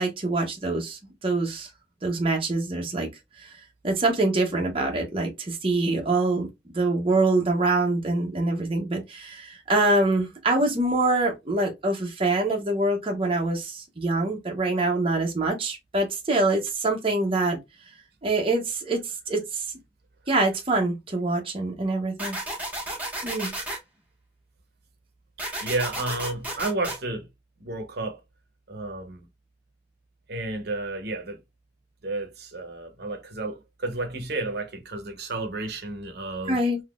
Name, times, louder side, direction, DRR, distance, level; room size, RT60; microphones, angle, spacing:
voice 1, 0.0-1.7 2.0-3.1 3.4-3.5 3.8-6.5 6.7-17.6 18.2-19.6 20.3-22.4 23.2-23.5 36.5-36.8, right 2 dB, 30° right, 0.8 m, -25 dB
sound 1, 22.2-23.8 25.4-27.0, right 1 dB, 10° right, 1.3 m, -32 dB
voice 2, 25.6-27.3 27.6-28.2 28.7-29.2 30.3-31.4 32.0-36.6, right 2 dB, 60° right, 0.9 m, -31 dB
3.7 x 2.8 x 2.4 m
head